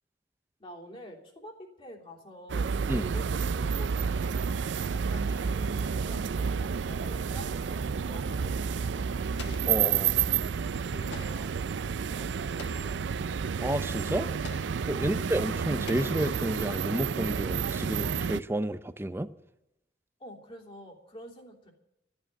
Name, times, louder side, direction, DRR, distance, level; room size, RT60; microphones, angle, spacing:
voice 1, 0.6-4.4 4.8-9.3 9.6-10.4 10.8-11.8 12.1-13.3 15.0-15.2 20.2-21.7, equal, 30° left, -2 dB, 3.2 m, -48 dB
sound 1, 2.5-18.4, right 6 dB, 85° right, 0.4 m, -30 dB
Explosion, 9.4-10.3 11.1-11.7 12.6-13.1 14.4-15.0 15.9-16.7, left 4 dB, 70° left, 1.4 m, -47 dB
voice 2, 9.6-10.1 13.6-14.3 14.9-19.3, right 1 dB, 15° right, 12 dB, 0.5 m, -30 dB
14.0 x 8.9 x 9.3 m, 0.87 s
head